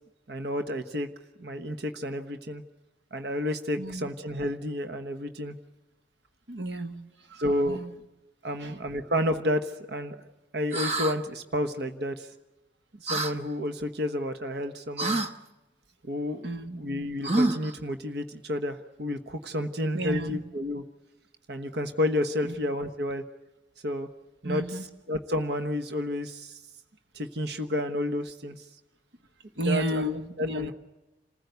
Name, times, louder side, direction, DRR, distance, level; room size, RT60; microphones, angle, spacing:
voice 1, 0.3-1.1 1.4-2.6 3.1-5.6 7.4-7.8 8.4-10.2 10.5-12.3 13.0-15.2 16.1-16.4 16.7-20.8 21.5-23.2 23.8-24.1 24.4-24.6 25.1-26.5 27.1-28.6 29.6-30.0 30.4-30.7, left 1 dB, 60° right, 8 dB, 1.2 m, -30 dB
voice 2, 3.8-4.1 6.5-7.9 8.6-8.9 16.4-16.8 19.9-20.4 22.4-22.6 24.4-24.9 29.6-30.7, right 1 dB, 75° right, 8 dB, 1.4 m, -32 dB
sound 1, 10.7-11.2 13.1-13.3 15.0-15.3 17.2-17.7, right 2 dB, 35° right, 1.0 m, -26 dB
28.0 x 15.5 x 8.1 m, 1.1 s
head